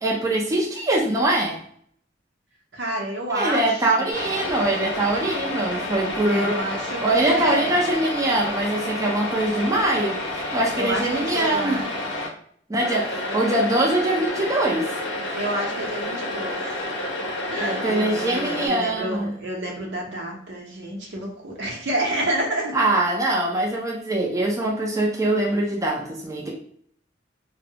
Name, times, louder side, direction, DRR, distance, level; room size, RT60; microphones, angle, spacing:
voice 1, 0.0-1.6 3.3-6.6 7.0-11.8 12.7-14.9 17.6-19.3 22.7-26.5, right 1 dB, 20° right, -2 dB, 0.4 m, -23 dB
voice 2, 2.7-4.2 6.3-7.7 10.7-11.9 13.2-13.4 15.3-16.6 17.5-22.8, right 1 dB, 70° right, -1 dB, 0.7 m, -29 dB
sound 1, 4.1-12.3 12.8-18.7, left 1 dB, 75° left, 0.6 m, -30 dB
2.2 x 2.0 x 2.7 m, 0.62 s
head